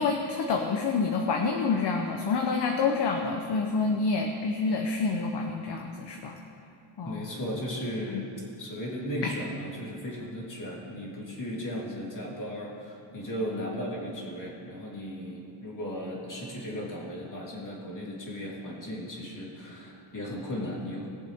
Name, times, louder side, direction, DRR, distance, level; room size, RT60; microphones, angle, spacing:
voice 1, 0.0-6.4 7.0-7.3 8.1-8.2 9.2-9.3, left 4 dB, 55° left, 3 dB, 0.9 m, -28 dB
voice 2, 7.0-8.3 8.6-21.1, equal, 40° left, -4 dB, 2.9 m, -36 dB
20.0 x 7.2 x 3.6 m, 2.7 s
wide cardioid pair, 125°, 49 cm